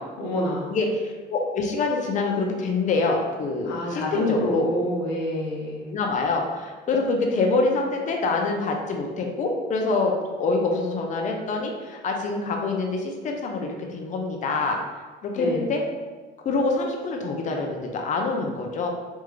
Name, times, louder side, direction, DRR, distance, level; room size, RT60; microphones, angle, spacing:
voice 1, 0.0-0.7 3.6-5.9 15.4-15.6, left 1 dB, 90° left, -2 dB, 0.8 m, -27 dB
voice 2, 0.7-4.7 5.9-14.8 15.2-15.8 16.4-18.9, left 3 dB, 45° left, 2 dB, 0.6 m, -25 dB
3.5 x 2.4 x 3.1 m, 1.3 s
cardioid pair, 110°, 17 cm